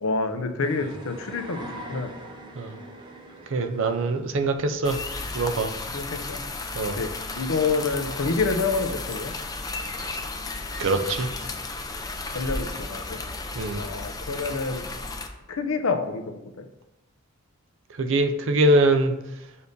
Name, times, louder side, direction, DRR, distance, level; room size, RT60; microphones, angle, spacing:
voice 1, 0.0-1.6 1.9-2.1 5.9-6.4 7.0-7.1 7.4-9.3 12.3-13.2 13.8-14.8 15.5-16.6, left 4 dB, 85° left, 7 dB, 0.6 m, -27 dB
sound 1, 0.6-8.7, right 1 dB, 20° right, 0.8 m, -44 dB
voice 2, 3.5-5.0 5.3-5.7 6.7-7.0 10.8-11.3 13.6-13.8 18.0-19.1, right 2 dB, 65° right, 8 dB, 0.5 m, -23 dB
sound 2, 4.8-15.3, left 3 dB, 20° left, 0.5 m, -34 dB
6.9 x 2.7 x 5.1 m, 0.92 s
head